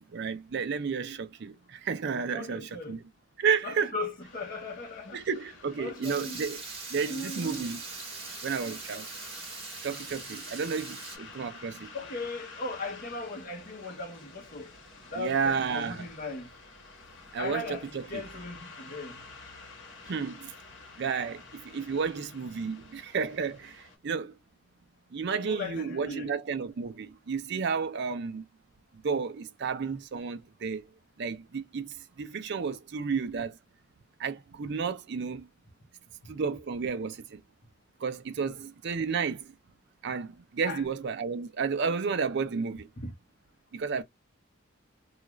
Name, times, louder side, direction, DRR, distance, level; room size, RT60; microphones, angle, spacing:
voice 1, 0.0-3.0 3.4-3.9 5.1-6.6 6.9-7.8 8.4-9.1 9.8-11.9 15.1-16.1 17.3-18.2 20.1-20.5 21.0-24.4 25.1-28.4 29.0-30.9 31.2-33.6 34.2-35.5 36.3-37.4 38.0-39.5 40.0-42.9 43.7-44.0, right 5 dB, 55° right, 0.5 m, -32 dB
voice 2, 2.3-3.0 3.6-5.2 5.8-6.4 7.1-7.7 11.9-14.7 15.1-16.5 17.4-19.2 25.4-26.3 38.5-38.6 40.6-40.8 43.0-43.1, left 2 dB, 45° left, 0.8 m, -38 dB
sound 1, 4.2-24.0, left 3 dB, 60° left, 1.1 m, -50 dB
Water tap faucet / Liquid, 6.0-11.2, right 4 dB, 30° right, 1.1 m, -41 dB
2.4 x 2.3 x 3.0 m
head